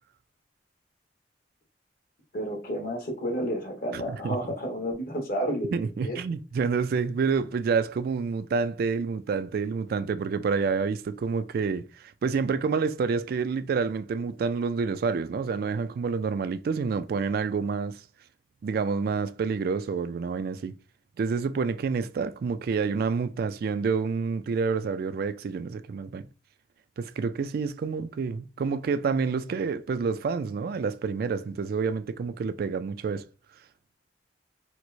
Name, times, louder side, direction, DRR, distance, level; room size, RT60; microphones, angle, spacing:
voice 1, 2.3-5.7 6.0-6.2, equal, 55° left, 1.2 m, -31 dB
voice 2, 3.9-4.4 5.7-18.0 18.6-20.8 21.2-26.3 27.0-33.3, right 5 dB, 55° right, 0.3 m, -28 dB
4.4 x 2.1 x 2.6 m
head